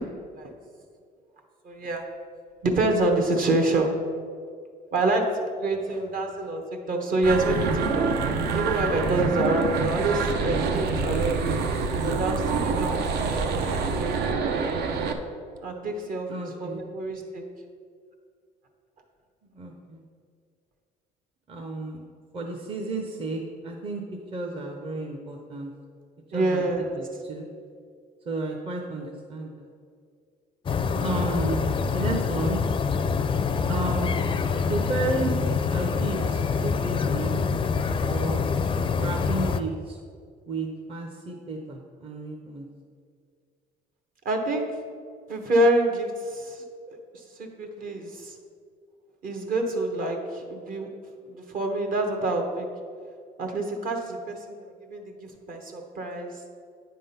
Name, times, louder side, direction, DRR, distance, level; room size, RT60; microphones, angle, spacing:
voice 1, 1.6-2.0 2.6-3.9 4.9-8.1 8.5-11.6 12.0-13.4 13.9-14.5 15.6-17.4 26.3-27.0 44.2-44.7 45.3-48.3 49.2-50.9 51.2-52.7 53.4-56.3, right 2 dB, 55° right, 3 dB, 1.2 m, -27 dB
sound 1, 7.2-15.1, right 4 dB, 75° right, 0.7 m, -26 dB
voice 2, 16.3-16.8 19.5-20.0 21.5-22.0 22.3-24.0 24.3-25.7 26.3-26.7 27.0-27.5 28.3-29.7 30.9-32.6 33.7-34.1 34.7-35.3 35.7-37.4 38.1-38.5 39.0-40.0 40.5-42.7, right 2 dB, 35° right, 1 dB, 0.8 m, -32 dB
sound 2, 30.7-39.6, left 5 dB, 30° left, 0.4 m, -26 dB
9.3 x 3.7 x 5.6 m, 2.1 s
cardioid pair, 110°, 17 cm